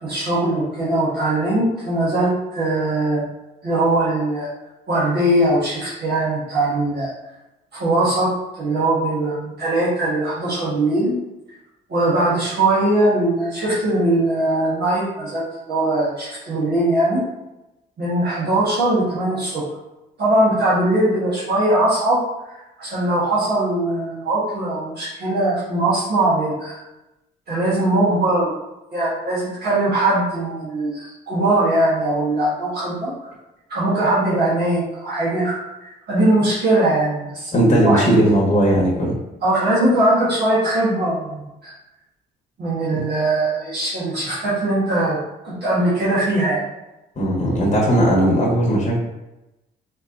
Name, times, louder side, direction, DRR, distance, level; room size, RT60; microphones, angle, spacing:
voice 1, 0.0-3.2 3.6-4.5 4.9-7.1 7.7-11.1 11.9-17.2 18.0-19.6 20.2-22.2 22.8-26.8 27.5-28.6 28.9-33.3 33.7-38.2 39.4-41.7 42.6-45.2 45.4-46.6, right 1 dB, 55° right, -8 dB, 1.4 m, -20 dB
voice 2, 37.5-39.2 42.9-43.0 47.2-49.0, right 1 dB, 35° left, -4 dB, 1.2 m, -17 dB
4.3 x 2.8 x 2.6 m, 0.97 s
cardioid pair, 90°, 20 cm